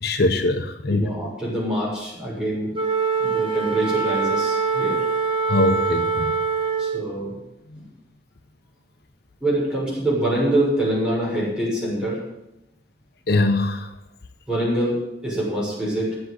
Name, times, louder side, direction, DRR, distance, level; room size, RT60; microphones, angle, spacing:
voice 1, 0.0-1.1 5.5-6.3 13.3-13.9, left 2 dB, 65° left, 6 dB, 0.9 m, -21 dB
voice 2, 0.9-2.7 3.2-5.0 6.8-7.4 7.7-7.8 9.4-12.2 14.5-16.2, right 1 dB, 5° right, -6 dB, 6.6 m, -25 dB
Wind instrument woodwind instrument, 2.7-7.1, right 5 dB, 30° right, 1.4 m, -23 dB
11.0 x 7.9 x 9.7 m, 0.89 s
head